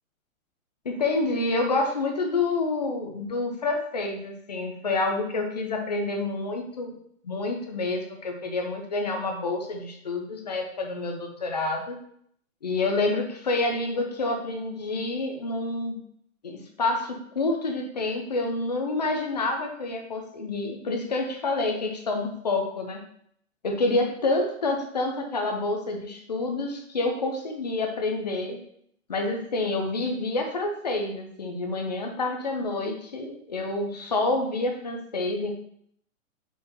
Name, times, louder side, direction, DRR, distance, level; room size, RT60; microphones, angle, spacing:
voice 1, 0.9-6.9 7.2-12.0 12.6-16.0 16.4-23.0 23.6-28.6 29.1-35.5, left 2 dB, 35° left, 3 dB, 0.4 m, -28 dB
4.5 x 3.6 x 2.6 m, 0.67 s
hypercardioid pair, 165°, 42 cm